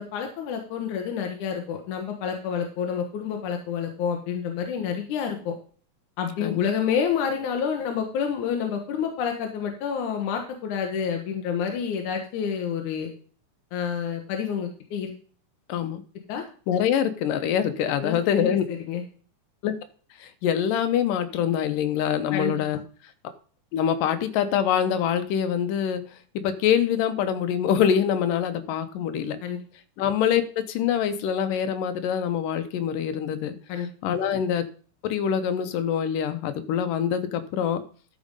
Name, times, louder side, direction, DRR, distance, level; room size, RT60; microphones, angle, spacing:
voice 1, 0.0-5.5 6.2-13.1 13.7-15.1 16.3-16.4 18.0-19.0 22.3-22.6 29.4-29.6 33.7-33.9, left 7 dB, 70° left, 4 dB, 2.5 m, -28 dB
voice 2, 15.7-16.0 16.7-18.6 19.6-19.7 20.2-22.8 23.7-26.0 26.4-29.4 30.0-33.6 34.0-34.7 35.0-37.8, left 8 dB, 90° left, 10 dB, 2.6 m, -25 dB
12.5 x 5.2 x 5.3 m, 0.42 s
omnidirectional pair, 3.7 m